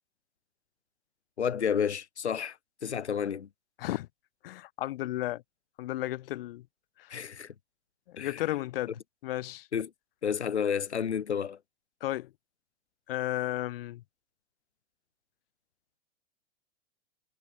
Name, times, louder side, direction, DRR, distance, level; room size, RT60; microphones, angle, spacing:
voice 1, 1.4-2.6 2.8-3.5 7.1-7.5 8.2-8.4 9.7-9.9 10.2-11.6, left 7 dB, 75° left, 3.5 m, -30 dB
voice 2, 4.4-5.4 5.8-6.6 8.1-9.0 9.2-9.7 12.0-12.3 13.1-14.0, left 15 dB, 55° left, 4.9 m, -33 dB
hypercardioid pair, 110°, 33 cm